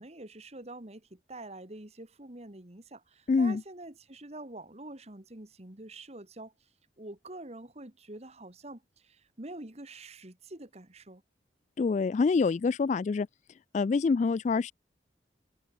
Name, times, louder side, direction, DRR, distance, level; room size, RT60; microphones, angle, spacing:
voice 1, 0.0-6.7 7.0-11.2, right 2 dB, 35° right, 1.9 m, -46 dB
voice 2, 3.3-3.6 11.8-13.3 13.7-14.7, left 4 dB, 40° left, 0.3 m, -26 dB
head